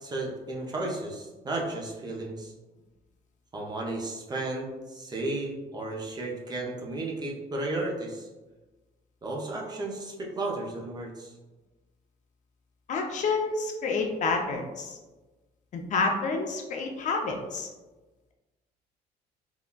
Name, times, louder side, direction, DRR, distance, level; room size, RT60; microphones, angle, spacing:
voice 1, 0.0-2.5 3.5-8.3 9.2-11.3, right 2 dB, 25° right, -1 dB, 0.5 m, -34 dB
voice 2, 12.9-15.0 15.7-17.7, left 4 dB, 45° left, 2 dB, 0.5 m, -29 dB
3.7 x 2.2 x 2.2 m, 1.2 s
cardioid pair, 110°, 17 cm